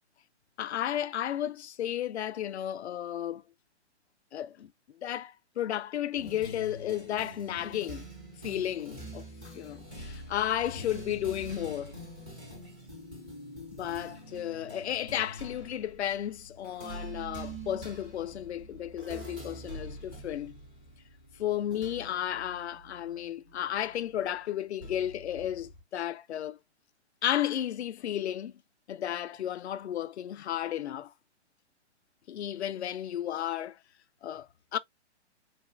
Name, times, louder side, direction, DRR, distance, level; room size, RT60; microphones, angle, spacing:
voice 1, 0.6-3.4 4.3-4.7 5.0-8.0 8.4-9.3 9.5-11.9 13.7-20.5 21.4-26.6 27.2-28.5 28.9-31.1 32.3-33.8 34.2-34.8, left 11 dB, 70° left, 0.5 m, -33 dB
sound 1, 6.1-24.0 24.8-25.8, right 1 dB, 10° right, 0.3 m, -45 dB
4.0 x 2.4 x 2.4 m
figure-of-eight pair, 130°, 35 cm